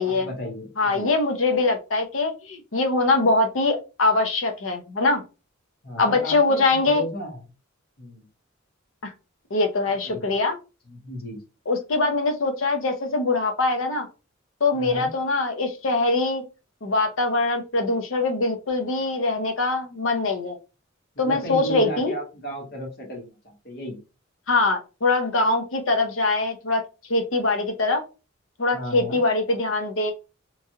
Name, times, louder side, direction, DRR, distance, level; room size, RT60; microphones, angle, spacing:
voice 1, 0.0-1.1 5.8-7.4 8.0-8.3 10.0-10.3 10.9-11.4 14.7-15.1 21.1-24.0 28.7-29.2, equal, 50° left, -1 dB, 1.2 m, -35 dB
voice 2, 0.8-5.2 6.0-7.0 9.0-9.1 9.5-10.6 11.7-14.1 14.6-16.4 16.8-20.6 21.2-22.1 24.5-26.8 27.1-28.0 28.6-30.1, left 3 dB, 70° left, 5 dB, 0.7 m, -23 dB
3.1 x 2.5 x 2.7 m, 0.29 s
head